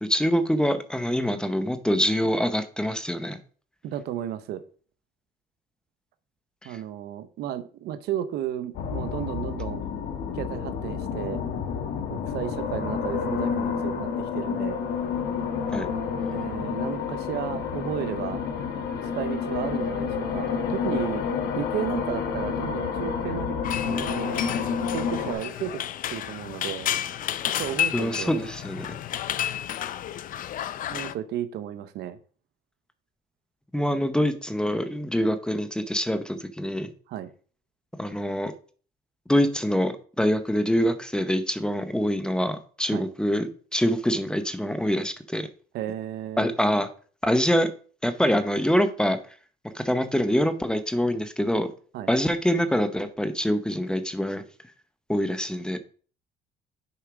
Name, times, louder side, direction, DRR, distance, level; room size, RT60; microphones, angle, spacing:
voice 1, 0.0-3.4 15.7-15.9 27.9-28.9 33.7-36.9 38.0-38.5 39.3-43.5 43.7-45.5 46.4-46.9 47.2-47.7 48.0-49.2 49.7-51.7 52.1-54.4 55.1-55.8, equal, 5° left, 9 dB, 0.8 m, -25 dB
voice 2, 3.8-4.6 6.6-9.8 10.3-11.4 12.1-14.8 16.3-18.4 19.1-21.2 21.5-23.6 23.8-24.4 24.9-25.8 26.1-26.9 27.6-28.5 30.9-32.2 37.1-37.3 42.9-43.1 45.7-46.5 51.9-52.1, right 11 dB, 75° right, 12 dB, 0.7 m, -33 dB
sound 1, 8.7-25.3, left 6 dB, 75° left, 1.4 m, -29 dB
sound 2, 23.6-31.1, left 11 dB, 55° left, 0.5 m, -31 dB
6.9 x 4.5 x 5.0 m, 0.42 s
cardioid pair, 110°, 17 cm